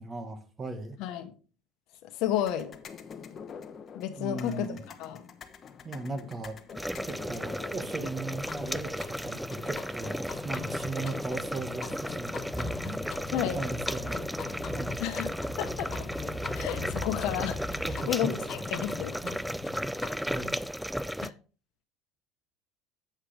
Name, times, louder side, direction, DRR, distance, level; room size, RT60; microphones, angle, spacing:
voice 1, 0.0-1.0 4.2-4.8 5.8-6.6 7.0-13.0 13.3-14.3 14.7-15.0 17.9-18.3 19.2-19.3 20.2-20.6, right 2 dB, 25° right, 8 dB, 1.7 m, -37 dB
voice 2, 1.0-1.3 2.0-2.7 3.9-5.2 13.3-13.6 15.0-15.9 16.5-17.6 18.1-19.1 21.2-21.3, left 11 dB, 65° left, 9 dB, 1.2 m, -32 dB
sound 1, 2.4-20.2, left 7 dB, 40° left, 1.0 m, -44 dB
sound 2, 6.7-21.3, equal, ahead, 0.3 m, -35 dB
sound 3, 12.2-18.0, left 1 dB, 20° left, 1.4 m, -40 dB
8.0 x 7.9 x 3.4 m, 0.37 s
supercardioid pair, 95°, 0 cm